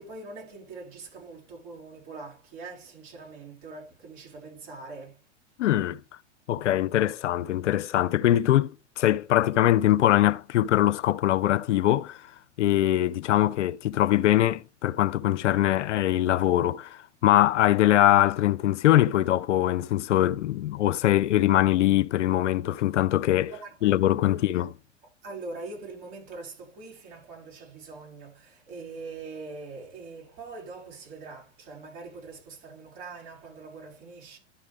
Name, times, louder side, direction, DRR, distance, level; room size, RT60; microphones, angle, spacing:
voice 1, 0.0-5.2 23.5-24.6 25.2-34.4, right 3 dB, 60° right, 5.4 m, -43 dB
voice 2, 5.6-6.0 6.5-8.7 9.0-12.2 12.6-16.9 17.2-23.5 23.8-24.7, left 13 dB, 80° left, 0.5 m, -22 dB
11.5 x 5.0 x 3.6 m
hypercardioid pair, 105°, 36 cm